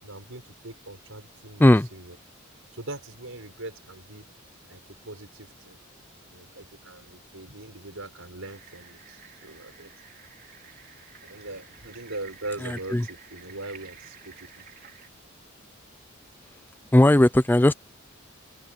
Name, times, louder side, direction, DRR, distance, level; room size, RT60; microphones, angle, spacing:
voice 1, 0.0-2.2 2.7-4.2 4.7-5.8 6.3-9.9 11.2-14.6, right 2 dB, 70° right, 6.0 m, -41 dB
sound 1, 8.4-15.1, right 7 dB, 45° right, 3.0 m, -50 dB
voice 2, 12.6-13.1 16.9-17.7, left 1 dB, 10° left, 0.4 m, -17 dB
open air
head